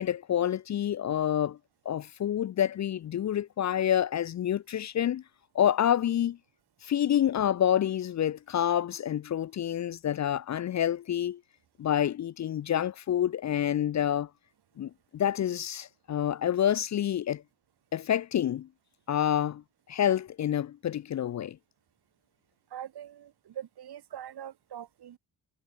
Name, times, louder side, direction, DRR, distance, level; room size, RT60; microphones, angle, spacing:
voice 1, 0.0-1.6 1.9-5.2 5.5-6.4 6.8-11.4 11.8-14.3 14.8-17.4 17.9-18.7 19.1-19.6 19.9-21.6, left 10 dB, 45° left, 0.4 m, -28 dB
voice 2, 22.7-25.2, right 10 dB, 70° right, 3.2 m, -43 dB
wide cardioid pair, 180°, 40 cm